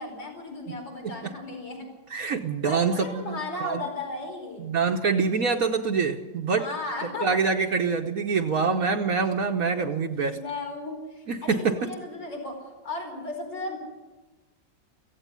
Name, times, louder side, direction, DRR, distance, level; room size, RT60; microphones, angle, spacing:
voice 1, 0.0-1.9 2.7-4.7 6.6-7.3 9.7-9.9 10.3-13.8, left 2 dB, 75° left, 2 dB, 5.4 m, -35 dB
voice 2, 2.1-3.8 4.6-6.7 7.2-10.4 11.3-11.9, right 5 dB, 55° right, 4 dB, 1.3 m, -25 dB
16.5 x 16.0 x 9.9 m, 1.2 s
omnidirectional pair, 2.0 m